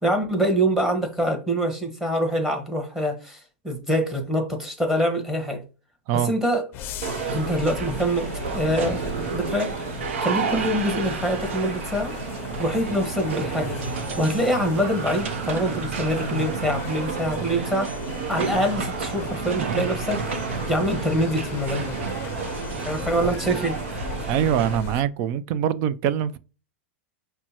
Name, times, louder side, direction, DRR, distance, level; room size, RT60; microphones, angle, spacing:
voice 1, 0.0-3.4 3.6-5.6 6.2-6.7 7.3-9.0 9.3-9.7 10.2-12.1 12.6-17.9 18.3-20.2 20.7-22.0 22.8-23.8, equal, 5° right, 1.4 m, -25 dB
sound 1, 6.7-25.0, left 6 dB, 35° left, 0.5 m, -37 dB
sound 2, 7.0-24.8, right 6 dB, 80° right, 0.7 m, -31 dB
voice 2, 24.3-26.4, right 9 dB, 45° right, 0.4 m, -23 dB
5.9 x 2.2 x 2.9 m
hypercardioid pair, 120°, 7 cm